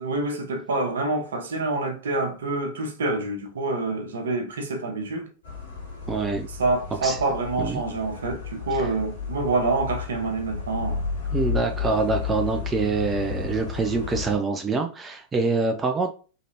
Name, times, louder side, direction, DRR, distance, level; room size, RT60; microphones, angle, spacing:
voice 1, 0.0-5.3 6.5-11.0, right 3 dB, 65° right, 0.9 m, -27 dB
sound 1, 5.4-14.4, left 6 dB, 65° left, 1.7 m, -32 dB
voice 2, 6.1-6.5 7.0-7.2 7.6-7.8 8.8-8.9 11.3-16.1, right 4 dB, 15° right, 0.5 m, -25 dB
3.8 x 3.2 x 2.9 m
figure-of-eight pair, 90°, 0 cm